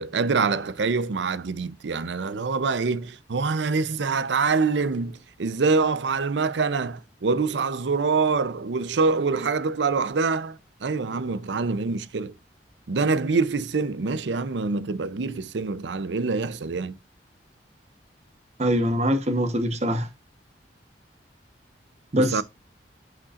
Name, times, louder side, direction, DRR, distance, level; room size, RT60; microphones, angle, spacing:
voice 1, 0.0-12.3 12.9-17.0 22.1-22.4, right 4 dB, 80° right, 0.6 m, -25 dB
voice 2, 18.6-20.1 22.1-22.4, equal, 40° right, 1.0 m, -23 dB
8.6 x 5.2 x 2.4 m
head